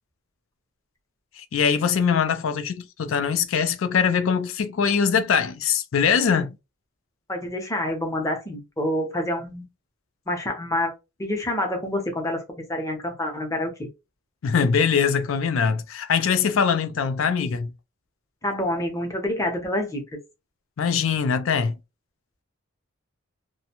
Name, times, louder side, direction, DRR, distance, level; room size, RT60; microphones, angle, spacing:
voice 1, 1.4-6.6 14.4-17.7 20.8-21.8, left 6 dB, 70° left, 0.4 m, -22 dB
voice 2, 7.3-9.7 10.3-10.9 11.2-13.9 18.4-20.2, left 1 dB, 15° left, 0.6 m, -27 dB
2.4 x 2.1 x 2.8 m
head